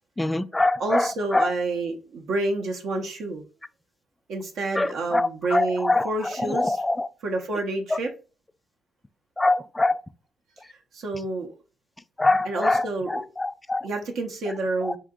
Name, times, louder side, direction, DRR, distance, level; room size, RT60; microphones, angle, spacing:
voice 1, 0.2-1.5 4.7-7.1 7.9-8.0 9.4-10.0 12.2-13.9 14.8-14.9, left 2 dB, 15° left, 0.3 m, -24 dB
voice 2, 0.8-3.4 4.3-6.8 7.2-8.1 10.9-11.5 12.4-13.2 13.8-15.0, right 2 dB, 75° right, 0.7 m, -29 dB
3.8 x 2.8 x 3.6 m
cardioid pair, 90°, 0 cm